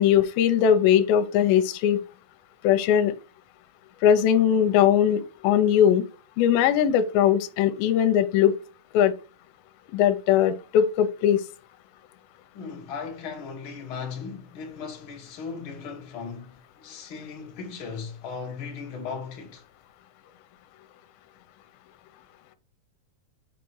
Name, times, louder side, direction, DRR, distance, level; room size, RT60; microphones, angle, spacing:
voice 1, 0.0-2.0 2.6-3.1 4.0-6.0 6.4-8.6 8.9-9.1 9.9-11.4, left 9 dB, 80° left, 2.4 m, -20 dB
voice 2, 12.5-19.6, left 5 dB, 60° left, 1.3 m, -37 dB
6.1 x 4.1 x 4.7 m
omnidirectional pair, 4.3 m